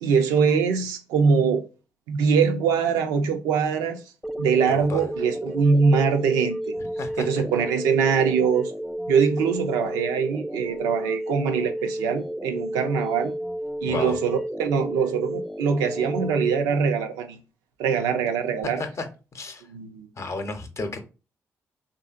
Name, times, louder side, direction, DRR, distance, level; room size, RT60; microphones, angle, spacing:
voice 1, 0.0-1.6 2.1-4.0 4.4-6.7 7.2-8.7 9.1-13.3 13.8-17.4 17.8-18.8 19.7-20.1, right 6 dB, 90° right, 0.4 m, -23 dB
sound 1, 4.2-16.6, equal, ahead, 0.3 m, -32 dB
voice 2, 4.7-5.0 7.0-7.3 13.9-14.1 18.6-19.1 19.3-19.6 20.2-21.0, left 3 dB, 50° left, 0.6 m, -32 dB
2.7 x 2.6 x 2.4 m
supercardioid pair, 45°, 6 cm